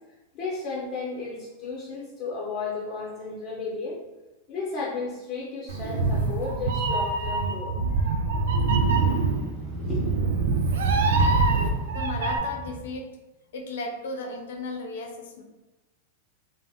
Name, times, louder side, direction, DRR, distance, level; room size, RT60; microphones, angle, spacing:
voice 1, 0.3-4.0 4.5-8.2 9.9-10.1 10.5-11.0, left 4 dB, 35° left, -6 dB, 0.8 m, -34 dB
Meow, 5.7-12.4, right 3 dB, 80° right, 0.3 m, -24 dB
Motorcycle, 6.5-12.9, right 1 dB, 25° right, 0.7 m, -39 dB
voice 2, 11.9-13.1 13.5-15.4, left 3 dB, 75° left, 3 dB, 0.5 m, -34 dB
2.1 x 2.0 x 3.4 m, 1.1 s
hypercardioid pair, 120°, 0 cm